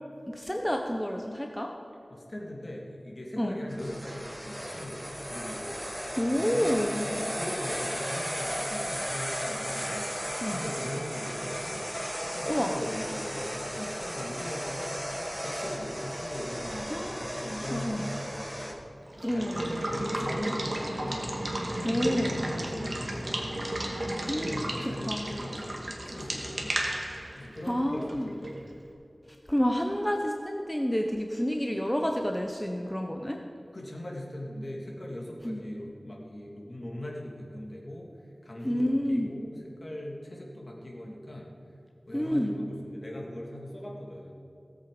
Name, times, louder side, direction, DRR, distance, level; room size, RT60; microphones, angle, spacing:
voice 1, 0.3-1.7 3.4-3.6 6.2-7.1 10.4-10.6 12.5-12.7 16.9-17.2 17.7-18.0 19.2-19.7 21.8-22.4 24.3-25.3 27.3-28.3 29.5-33.4 35.4-35.6 38.6-39.3 42.1-42.6, equal, 10° left, 2 dB, 0.9 m, -29 dB
voice 2, 2.1-6.7 7.0-10.1 10.5-11.8 12.2-15.0 15.4-18.8 19.3-21.3 21.8-23.4 24.3-26.7 27.4-28.5 33.7-38.1 38.4-41.5 42.1-44.3, left 1 dB, 45° left, -2 dB, 2.9 m, -40 dB
sound 1, 3.7-18.7, equal, 10° right, 1.9 m, -35 dB
Water / Water tap faucet / Liquid, 19.1-28.7, right 1 dB, 45° right, 2.0 m, -33 dB
18.5 x 8.3 x 5.1 m, 2.9 s
wide cardioid pair, 60°, 0 cm